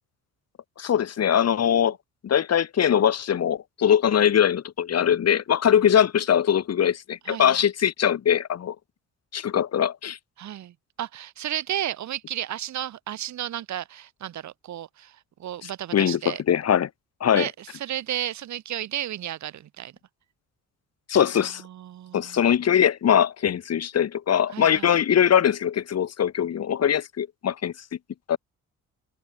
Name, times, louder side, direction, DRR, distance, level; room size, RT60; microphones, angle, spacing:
voice 1, 0.8-2.0 2.2-8.7 9.3-10.2 15.9-16.9 17.2-17.5 21.1-21.6 22.1-27.7 28.3-28.4, left 9 dB, 55° left, 2.9 m, -21 dB
voice 2, 7.2-7.6 10.4-16.4 17.3-19.9 21.6-22.5 24.5-24.9, right 11 dB, 70° right, 2.2 m, -33 dB
cardioid pair, 90°, 30 cm